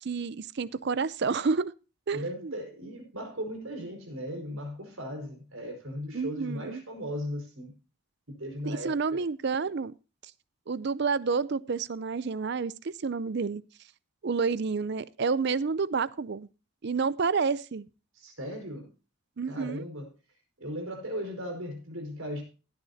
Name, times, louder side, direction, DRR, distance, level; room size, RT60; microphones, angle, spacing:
voice 1, 0.0-1.7 2.1-2.5 6.1-6.8 8.7-9.9 10.7-13.6 14.2-16.5 16.8-17.9 19.4-19.8, right 5 dB, 50° right, 19 dB, 0.5 m, -29 dB
voice 2, 2.1-7.7 8.3-9.2 18.1-18.9 19.4-20.1 20.6-22.4, equal, 70° right, 4 dB, 5.1 m, -37 dB
17.0 x 9.8 x 2.7 m, 0.31 s
head